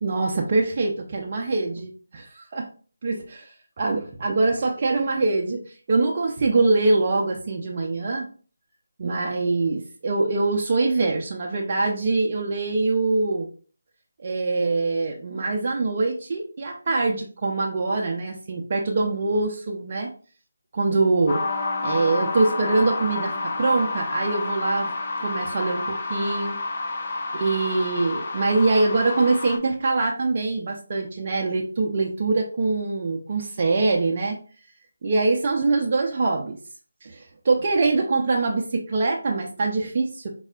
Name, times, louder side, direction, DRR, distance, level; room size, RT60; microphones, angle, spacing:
voice 1, 0.0-2.6 3.0-8.3 9.0-13.5 14.2-20.1 20.7-21.4 21.8-24.9 25.2-26.6 27.3-34.4 35.0-36.6 37.0-40.3, right 3 dB, 40° right, 0 dB, 0.4 m, -24 dB
sound 1, 21.3-29.6, left 3 dB, 45° left, 0.5 m, -29 dB
4.2 x 2.0 x 2.4 m, 0.41 s
figure-of-eight pair, 155°, 0 cm